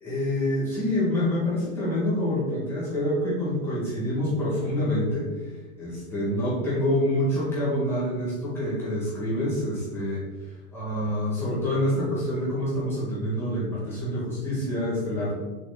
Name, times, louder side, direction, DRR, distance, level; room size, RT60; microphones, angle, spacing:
voice 1, 0.0-5.3 5.8-10.2 10.7-15.3, left 1 dB, 5° left, -8 dB, 1.8 m, -26 dB
7.2 x 3.6 x 3.8 m, 1.2 s
supercardioid pair, 175°, 42 cm